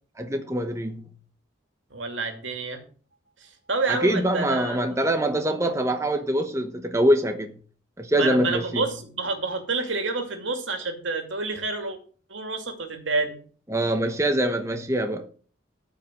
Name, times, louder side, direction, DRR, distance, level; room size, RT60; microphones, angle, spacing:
voice 1, 0.2-1.1 3.9-7.5 8.0-8.8 13.7-15.3, right 1 dB, 15° right, 0.9 m, -24 dB
voice 2, 1.9-2.8 3.4-4.8 8.1-12.0 12.3-13.4, right 3 dB, 80° right, 2.6 m, -28 dB
13.5 x 5.7 x 6.3 m
head